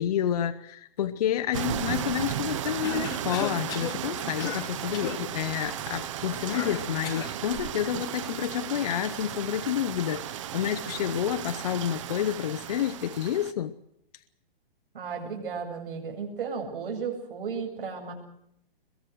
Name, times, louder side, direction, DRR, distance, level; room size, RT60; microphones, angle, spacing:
voice 1, 0.0-13.7, left 10 dB, 40° left, 10 dB, 0.8 m, -29 dB
sound 1, 1.5-13.5, right 10 dB, 35° right, 1.0 m, -35 dB
Cough, 2.8-4.0 4.4-4.7 4.9-5.2 6.5-7.4, left 10 dB, 10° left, 1.0 m, -36 dB
voice 2, 14.9-18.1, right 6 dB, 65° right, 2 dB, 8.0 m, -34 dB
22.5 x 22.5 x 6.4 m, 0.75 s
hypercardioid pair, 170°, 30 cm